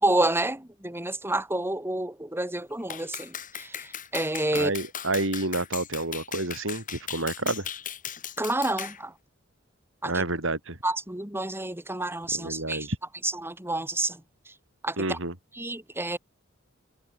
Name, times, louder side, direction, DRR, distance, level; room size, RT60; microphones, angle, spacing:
voice 1, 0.0-4.7 8.4-9.1 10.0-10.1 10.8-12.9 13.2-14.2 14.8-15.2 15.6-16.2, right 2 dB, 10° right, 3.7 m, -29 dB
Clapping, 2.9-9.0, left 9 dB, 40° left, 4.2 m, -38 dB
voice 2, 4.5-7.7 10.0-10.8 12.3-13.0 15.0-15.3, right 2 dB, 65° right, 6.5 m, -29 dB
head